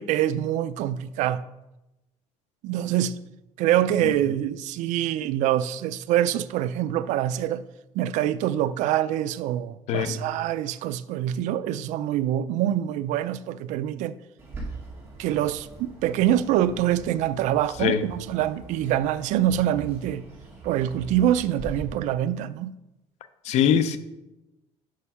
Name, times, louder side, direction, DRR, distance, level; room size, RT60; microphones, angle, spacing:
voice 1, 0.0-1.4 2.6-3.1 3.6-7.6 7.9-14.2 15.2-20.2 20.6-22.7, right 12 dB, 80° right, 0.4 m, -25 dB
Bird, 14.4-21.8, right 3 dB, 20° right, 2.1 m, -42 dB
voice 2, 23.4-24.0, left 9 dB, 65° left, 0.6 m, -22 dB
6.5 x 5.6 x 5.5 m
cardioid pair, 155°, 12 cm